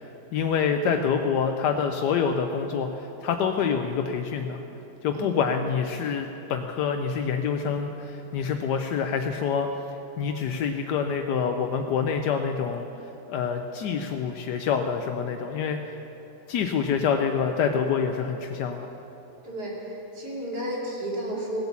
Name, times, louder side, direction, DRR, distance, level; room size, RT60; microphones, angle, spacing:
voice 1, 0.3-4.6 5.0-9.7 10.2-12.9 13.3-15.8 16.5-18.9, left 6 dB, 80° left, 5 dB, 1.3 m, -26 dB
voice 2, 5.1-5.4 19.4-21.7, right 1 dB, 70° right, -4 dB, 3.2 m, -32 dB
17.0 x 8.0 x 7.1 m, 3.0 s
omnidirectional pair, 1.8 m